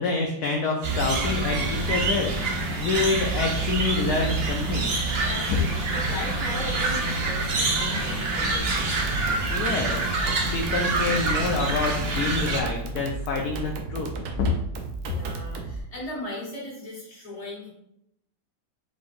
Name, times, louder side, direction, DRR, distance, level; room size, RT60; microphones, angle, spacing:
voice 1, 0.0-4.9 9.5-10.2 10.5-14.1 14.4-14.5, left 3 dB, 70° left, 1 dB, 1.0 m, -27 dB
sound 1, 0.8-12.6, right 3 dB, 90° right, 0.5 m, -26 dB
sound 2, 3.9-11.5, right 1 dB, ahead, 1.2 m, -39 dB
voice 2, 5.2-8.7 15.0-17.7, left 1 dB, 20° left, -6 dB, 1.6 m, -37 dB
sound 3, 8.6-15.8, right 3 dB, 65° right, 1.0 m, -34 dB
4.8 x 4.2 x 2.5 m, 0.78 s
omnidirectional pair, 2.1 m